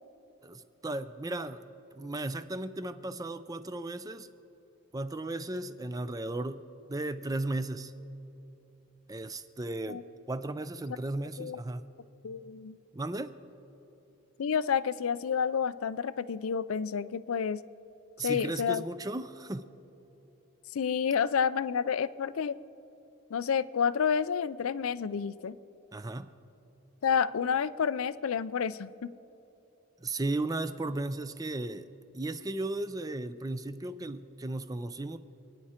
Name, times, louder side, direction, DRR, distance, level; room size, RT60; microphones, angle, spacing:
voice 1, 0.4-1.6 1.9-4.3 4.9-7.9 9.1-11.9 12.9-13.4 18.2-19.7 25.9-26.4 30.0-31.9 32.1-35.2, right 2 dB, 15° right, 12 dB, 0.5 m, -35 dB
voice 2, 12.2-12.8 14.4-17.6 18.2-18.8 20.7-22.6 23.3-25.6 27.0-28.9, left 7 dB, 75° left, 16 dB, 0.4 m, -29 dB
28.0 x 9.7 x 4.4 m, 3.0 s
head